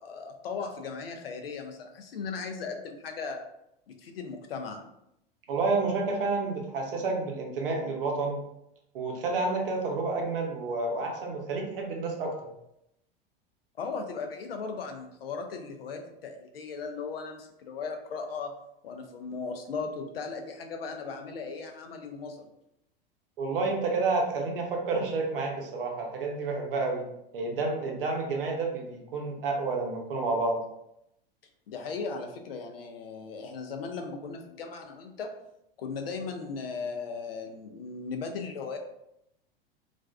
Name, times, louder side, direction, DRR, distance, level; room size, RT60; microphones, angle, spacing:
voice 1, 0.0-3.4 3.9-4.9 13.8-18.5 18.8-22.5 31.7-35.3 35.8-38.8, left 4 dB, 75° left, 4 dB, 0.5 m, -37 dB
voice 2, 5.5-8.4 8.9-12.5 23.4-27.1 27.3-30.6, right 3 dB, 65° right, 1 dB, 0.7 m, -30 dB
2.4 x 2.2 x 2.3 m, 0.81 s
figure-of-eight pair, 90°, 29 cm